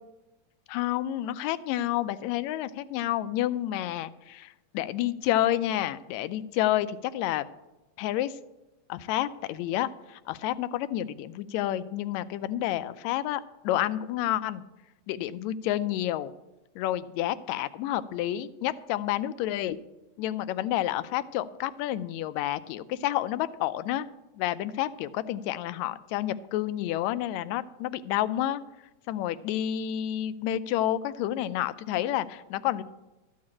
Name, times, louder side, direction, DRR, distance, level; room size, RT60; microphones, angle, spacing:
voice 1, 0.7-7.4 8.0-8.4 8.9-14.6 15.1-16.3 16.8-19.8 20.2-24.1 24.4-28.6 29.1-32.8, left 13 dB, 80° left, 14 dB, 1.7 m, -29 dB
13.5 x 4.7 x 8.5 m, 1.0 s
omnidirectional pair, 3.5 m